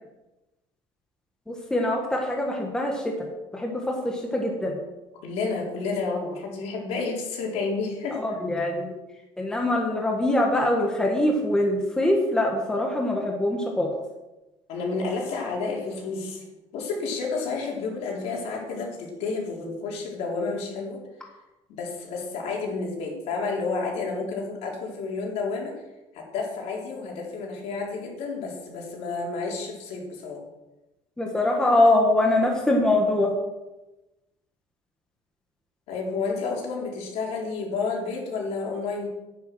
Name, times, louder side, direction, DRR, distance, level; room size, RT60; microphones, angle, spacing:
voice 1, 1.5-3.1 3.5-4.8 8.1-9.0 9.4-13.9 31.2-33.3, left 1 dB, 5° left, 0 dB, 1.6 m, -23 dB
voice 2, 5.2-8.2 14.7-16.4 16.7-21.0 21.7-25.7 26.1-30.4 35.9-39.1, left 4 dB, 65° left, -1 dB, 4.1 m, -30 dB
10.5 x 10.0 x 6.3 m, 1.0 s
cardioid pair, 180°, 12 cm